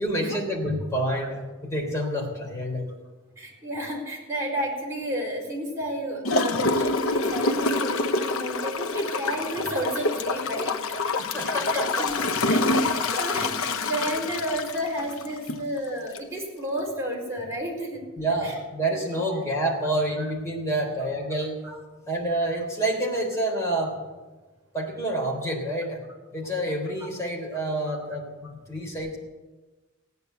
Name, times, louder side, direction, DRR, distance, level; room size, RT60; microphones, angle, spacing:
voice 1, 0.0-2.9 11.2-12.1 13.1-13.2 15.5-15.6 18.2-21.6 22.1-23.9 24.7-26.0 26.3-29.2, right 1 dB, 15° left, -2 dB, 3.6 m, -28 dB
voice 2, 3.4-10.8 11.4-12.2 12.4-18.0 18.4-18.6 19.3-19.4 20.2-20.3 21.6-21.8 27.0-27.1 27.9-28.0, equal, 15° right, -3 dB, 4.4 m, -32 dB
Gurgling / Toilet flush, 6.2-15.7 16.1-16.2, left 2 dB, 85° left, 0.8 m, -26 dB
16.5 x 9.6 x 8.1 m, 1.2 s
head